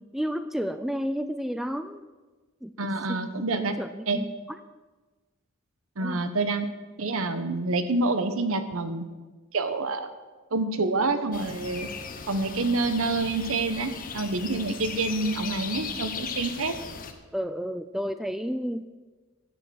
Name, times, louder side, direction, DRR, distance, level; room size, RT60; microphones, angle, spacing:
voice 1, 0.1-2.1 2.6-4.3 6.0-6.2 17.3-18.8, equal, ahead, 10 dB, 0.3 m, -32 dB
voice 2, 2.8-3.7 4.1-4.2 6.0-6.7 7.0-9.0 9.5-10.1 10.5-11.9 12.3-16.8, right 3 dB, 70° right, 10 dB, 1.0 m, -27 dB
sound 1, 11.3-17.1, left 6 dB, 40° left, 0.9 m, -37 dB
10.5 x 8.4 x 6.3 m, 1.3 s
head